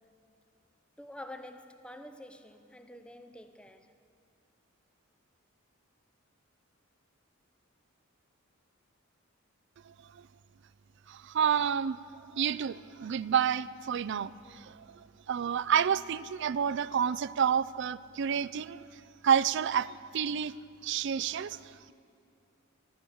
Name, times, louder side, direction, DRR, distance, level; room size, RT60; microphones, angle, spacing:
voice 1, 1.0-3.9, left 1 dB, 5° left, 0.5 m, -47 dB
voice 2, 9.9-10.3 11.1-12.0 12.3-18.9 19.2-20.5 20.8-21.9, right 8 dB, 60° right, 0.4 m, -30 dB
14.5 x 12.0 x 7.0 m
head